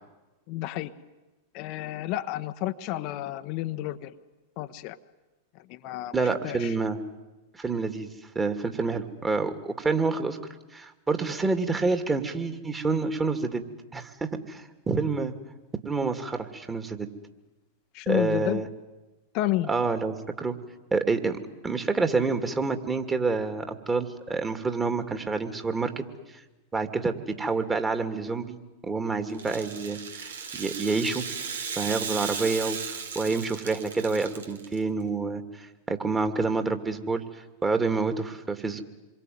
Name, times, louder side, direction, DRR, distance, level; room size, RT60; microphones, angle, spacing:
voice 1, 0.5-0.9 1.5-4.1 4.6-5.0 5.7-6.1 6.4-6.7 17.9-18.6 19.3-19.7, left 15 dB, 50° left, 8 dB, 1.1 m, -30 dB
voice 2, 6.1-7.0 7.5-8.1 8.3-10.4 10.7-13.6 13.9-15.3 15.8-17.1 18.1-18.7 19.7-20.6 20.9-26.0 26.7-28.6 28.8-31.2 31.8-37.2 37.6-38.8, right 4 dB, 15° right, 8 dB, 2.5 m, -28 dB
Rattle (instrument), 29.3-34.8, right 6 dB, 75° right, 2.4 m, -36 dB
27.0 x 22.5 x 9.5 m, 1.1 s
figure-of-eight pair, 95°, 0 cm